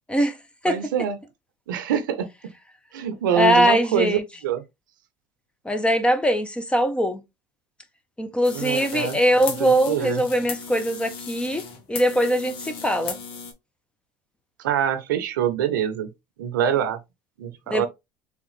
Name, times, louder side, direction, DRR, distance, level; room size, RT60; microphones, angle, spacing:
voice 1, 0.7-1.2 1.7-2.3 2.9-4.6 8.5-9.2 9.6-10.2 14.6-16.1 16.4-17.0 17.4-17.9, right 9 dB, 85° right, 0.6 m, -25 dB
voice 2, 3.3-4.2 5.6-7.2 8.2-13.2 17.7-17.9, equal, 10° left, 0.9 m, -21 dB
sound 1, 8.4-13.5, left 5 dB, 60° left, 1.3 m, -36 dB
3.6 x 3.5 x 3.2 m
hypercardioid pair, 80°, 10 cm